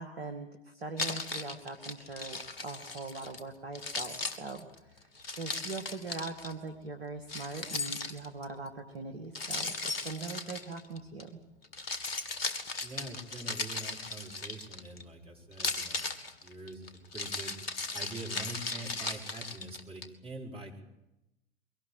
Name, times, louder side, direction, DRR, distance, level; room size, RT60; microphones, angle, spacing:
voice 1, 0.0-9.7 10.0-11.3, right 3 dB, 75° right, 5 dB, 2.2 m, -41 dB
Keys jangling, 1.0-3.4 3.8-6.5 7.3-8.5 9.4-11.2 11.6-15.0 15.5-20.1, left 3 dB, 65° left, 2.0 m, -37 dB
voice 2, 12.8-16.1 16.4-17.6 17.9-20.8, right 2 dB, 15° right, -1 dB, 4.8 m, -44 dB
23.0 x 18.5 x 8.9 m, 0.93 s
figure-of-eight pair, 90°, 32 cm